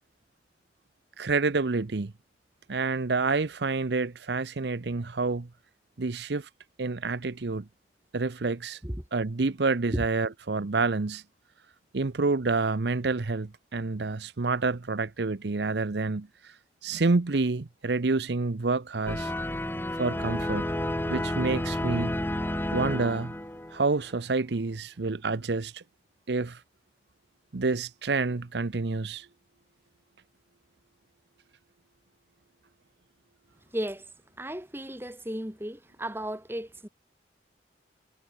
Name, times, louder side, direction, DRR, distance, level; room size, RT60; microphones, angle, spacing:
voice 1, 1.2-2.1 2.7-5.5 6.0-6.5 6.8-7.6 8.1-8.8 9.1-11.2 11.9-16.3 16.8-19.3 20.0-20.7 21.1-22.2 22.7-23.3 23.7-25.8 26.3-26.6 27.5-29.3, right 3 dB, 70° right, 0.7 m, -28 dB
sound 1, 19.1-23.9, left 1 dB, 10° left, 1.3 m, -31 dB
voice 2, 33.7-34.1 34.4-36.9, equal, 10° right, 2.5 m, -34 dB
head